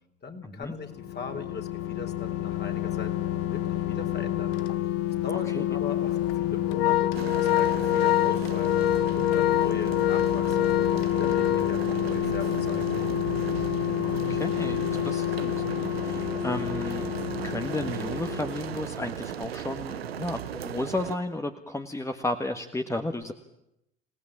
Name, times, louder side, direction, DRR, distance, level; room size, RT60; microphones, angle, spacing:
voice 1, 0.2-3.2 3.5-4.6 5.2-8.8 9.1-10.7 11.1-12.9, left 4 dB, 35° left, 5 dB, 3.7 m, -39 dB
sound 1, 0.8-19.1 19.4-19.5, left 13 dB, 50° left, 1.3 m, -29 dB
Organ, 4.5-4.7 5.1-5.2 6.1-12.4, left 13 dB, 75° left, 1.0 m, -26 dB
sound 2, 7.1-21.2, right 10 dB, 85° right, 0.9 m, -36 dB
voice 2, 14.0-17.1 17.4-23.3, left 2 dB, 10° left, 6 dB, 1.6 m, -33 dB
27.0 x 18.0 x 8.8 m, 0.84 s
hypercardioid pair, 65°, 30 cm